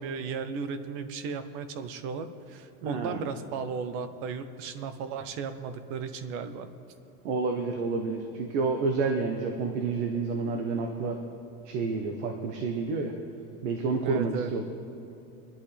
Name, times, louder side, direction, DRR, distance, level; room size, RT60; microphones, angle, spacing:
voice 1, 0.0-6.7 14.0-14.5, right 5 dB, 30° right, 11 dB, 0.6 m, -35 dB
voice 2, 2.8-3.3 7.2-11.2 11.6-13.1 13.6-14.6, right 4 dB, 55° right, 3 dB, 1.2 m, -29 dB
27.0 x 11.5 x 3.4 m, 2.7 s
supercardioid pair, 175°, 43 cm